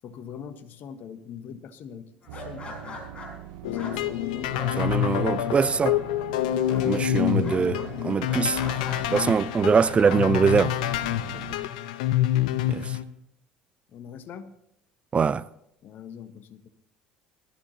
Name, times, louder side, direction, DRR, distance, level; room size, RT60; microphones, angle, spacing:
voice 1, 0.0-3.0 3.7-5.0 5.9-6.0 11.2-11.7 13.9-14.5 15.8-16.7, left 7 dB, 50° left, 1.3 m, -42 dB
sound 1, 2.2-5.5 5.8-6.3 6.7-9.3 9.7-10.5, left 2 dB, 30° left, 5.1 m, -41 dB
sound 2, 2.3-11.6, right 11 dB, 70° right, 0.6 m, -42 dB
sound 3, 3.6-13.0, left 12 dB, 75° left, 0.7 m, -27 dB
voice 2, 4.8-6.0 6.8-8.6 9.1-10.7 12.7-13.0 15.1-15.4, right 6 dB, 30° right, 0.4 m, -23 dB
20.5 x 13.5 x 2.8 m
hypercardioid pair, 65°, 4 cm